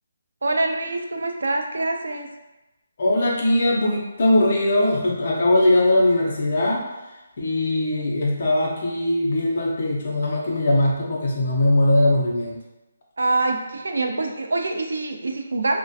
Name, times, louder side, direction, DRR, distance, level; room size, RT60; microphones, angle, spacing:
voice 1, 0.4-2.3 13.2-15.8, right 2 dB, 90° right, 4 dB, 0.4 m, -25 dB
voice 2, 3.0-6.9 7.4-12.6, left 1 dB, 35° left, -2 dB, 0.5 m, -20 dB
2.4 x 2.1 x 2.6 m, 0.99 s
hypercardioid pair, 180°, 0 cm